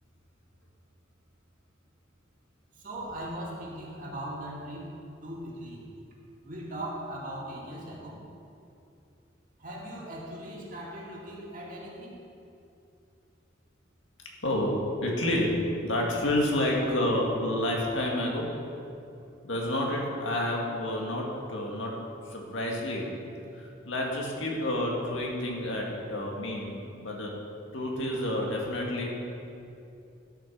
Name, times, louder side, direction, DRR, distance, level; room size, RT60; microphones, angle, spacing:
voice 1, 2.8-4.9 5.2-5.9 6.4-8.2 9.6-12.2, right 1 dB, 45° right, -4 dB, 2.2 m, -39 dB
voice 2, 14.4-18.6 19.4-22.0 22.3-23.2 23.5-27.4 27.7-29.1, left 1 dB, 75° left, -1 dB, 1.8 m, -29 dB
12.5 x 5.8 x 6.0 m, 2.6 s
head